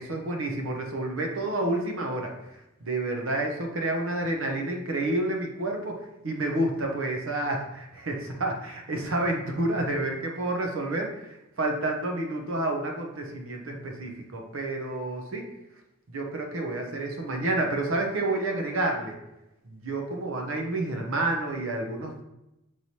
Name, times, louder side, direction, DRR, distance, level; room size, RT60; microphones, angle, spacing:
voice 1, 0.0-15.5 16.1-19.2 19.7-22.2, right 2 dB, 65° right, 2 dB, 0.7 m, -29 dB
5.6 x 3.1 x 2.8 m, 0.92 s
head